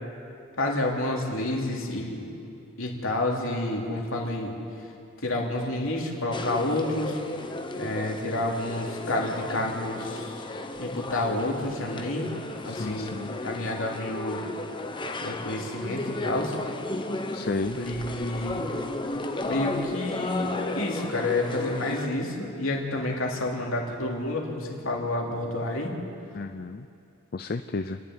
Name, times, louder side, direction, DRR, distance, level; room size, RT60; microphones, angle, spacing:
voice 1, 0.6-2.3 2.8-4.6 5.2-7.2 7.8-10.4 10.8-12.3 12.6-14.4 15.2-16.5 17.8-18.7 19.4-25.9, left 2 dB, 65° left, -1 dB, 3.4 m, -29 dB
sound 1, 6.3-22.1, left 2 dB, 20° left, 1.1 m, -34 dB
voice 2, 12.6-13.4 17.3-17.8 26.3-26.9 27.3-28.0, left 3 dB, 45° left, 9 dB, 0.5 m, -33 dB
28.5 x 11.5 x 9.6 m, 2.6 s
head